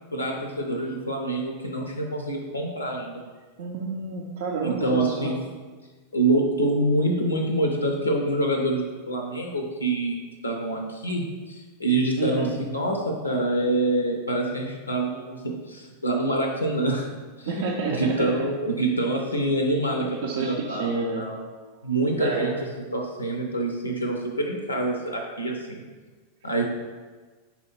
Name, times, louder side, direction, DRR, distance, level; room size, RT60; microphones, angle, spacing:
voice 1, 0.1-3.2 4.6-5.4 6.1-17.1 17.4-17.6 17.9-20.9 21.2-21.4 21.8-22.5 22.9-25.8 26.4-26.6, right 1 dB, 80° left, 2 dB, 0.5 m, -26 dB
voice 2, 3.6-5.3 12.2-12.6 17.4-18.3 20.2-21.3 22.1-22.6, right 4 dB, 55° right, -1 dB, 0.4 m, -29 dB
4.4 x 2.8 x 4.1 m, 1.4 s
figure-of-eight pair, 90°, 0 cm